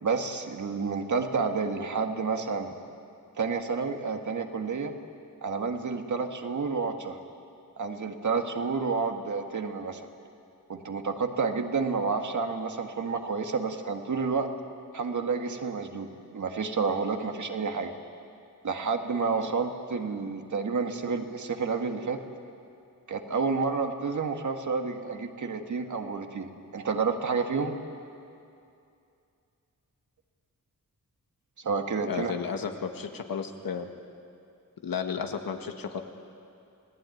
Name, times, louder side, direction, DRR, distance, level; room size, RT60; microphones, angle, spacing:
voice 1, 0.0-2.8 3.4-4.9 5.4-7.2 7.8-10.0 10.7-14.5 14.9-17.9 18.6-22.2 23.1-27.7 31.6-32.3, right 4 dB, 60° right, 4 dB, 2.0 m, -30 dB
voice 2, 32.1-33.9 34.8-36.0, left 6 dB, 85° left, 5 dB, 2.0 m, -33 dB
30.0 x 18.5 x 9.4 m, 2.6 s
wide cardioid pair, 130°, 34 cm